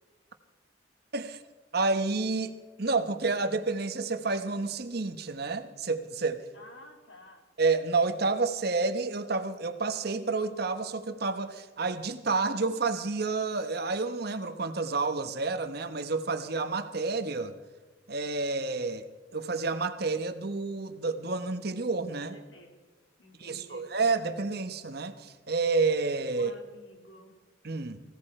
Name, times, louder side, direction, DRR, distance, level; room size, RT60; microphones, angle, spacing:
voice 1, 1.7-6.4 7.6-17.5 18.1-19.1 19.3-22.3 23.4-26.5 27.6-28.0, right 3 dB, 55° right, 9 dB, 1.1 m, -29 dB
voice 2, 6.5-7.5 22.2-22.7 23.2-23.9 26.3-27.4, left 2 dB, 85° left, 3 dB, 2.7 m, -52 dB
20.0 x 16.5 x 4.4 m, 1.2 s
head